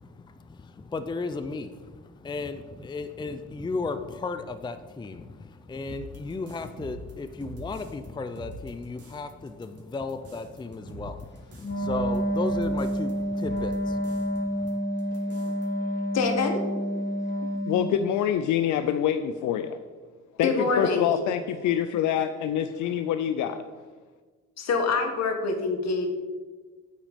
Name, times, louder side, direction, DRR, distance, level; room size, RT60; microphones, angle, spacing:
voice 1, 0.0-14.8, left 3 dB, 15° left, 10 dB, 0.5 m, -35 dB
sound 1, 5.9-8.1 8.4-9.2 9.5-13.1 13.4-14.4 14.7-14.8 15.0-15.7, right 1 dB, 50° right, 1.9 m, -43 dB
Wind instrument woodwind instrument, 11.6-18.1, equal, 35° left, 1.8 m, -29 dB
voice 2, 15.3-15.7 17.4-19.8 20.4-23.6, left 9 dB, 75° left, 10 dB, 0.5 m, -26 dB
voice 3, 16.1-16.6 20.4-21.1 24.6-26.1, left 4 dB, 60° left, 5 dB, 1.6 m, -25 dB
8.6 x 5.9 x 5.2 m, 1.4 s
cardioid pair, 90°, 30 cm